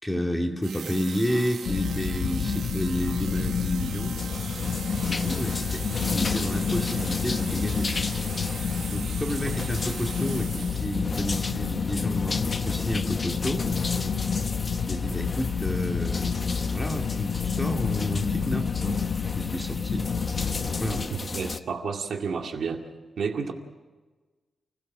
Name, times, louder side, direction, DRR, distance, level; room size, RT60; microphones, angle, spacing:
voice 1, 0.0-4.2 5.0-7.9 8.9-13.7 14.8-16.4 16.7-20.0 20.6-21.1, equal, 5° left, 2 dB, 2.1 m, -31 dB
sound 1, 0.6-11.2, right 7 dB, 85° right, 1.2 m, -40 dB
sound 2, 1.6-21.0, left 6 dB, 70° left, 1.0 m, -29 dB
sound 3, 4.1-21.6, left 3 dB, 30° left, 0.8 m, -35 dB
voice 2, 21.1-22.8 23.2-23.5, right 5 dB, 65° right, 3 dB, 2.2 m, -30 dB
30.0 x 16.5 x 6.4 m, 1.3 s
wide cardioid pair, 160°, 0 cm